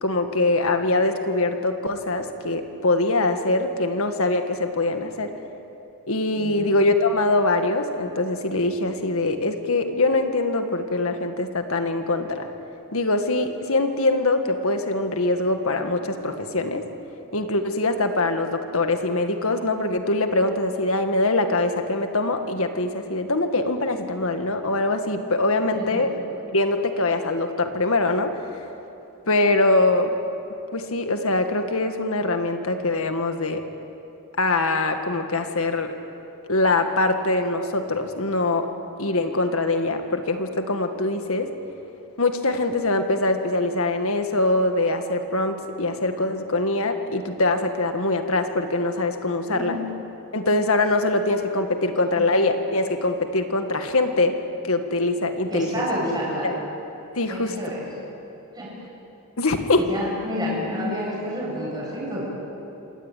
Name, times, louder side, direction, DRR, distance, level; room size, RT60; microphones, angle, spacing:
voice 1, 0.0-5.3 6.1-12.5 12.9-16.9 17.3-26.1 26.5-28.3 29.3-30.2 30.7-33.6 34.3-35.9 36.5-38.7 39.0-41.5 42.2-49.8 50.3-54.3 54.6-55.8 56.4-56.6 57.2-57.5 59.4-59.9, left 2 dB, 65° left, 6 dB, 1.9 m, -23 dB
voice 2, 6.4-6.8 25.7-26.1 49.5-49.9 52.1-52.2 55.5-56.5 57.3-57.8 58.5-58.7 59.9-62.2, equal, 20° right, -5 dB, 8.0 m, -29 dB
26.5 x 17.5 x 9.2 m, 2.9 s
head